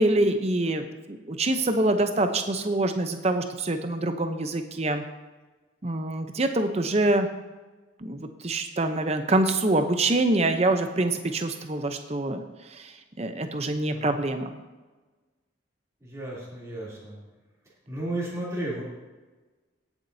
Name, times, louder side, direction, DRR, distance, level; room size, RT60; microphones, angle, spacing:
voice 1, 0.0-5.0 5.8-7.3 8.0-12.4 12.7-14.6, right 2 dB, 35° right, 7 dB, 0.7 m, -25 dB
voice 2, 13.9-14.3 16.0-17.2 17.9-18.8, right 1 dB, 15° right, -7 dB, 3.0 m, -34 dB
17.0 x 7.3 x 2.7 m, 1.3 s
head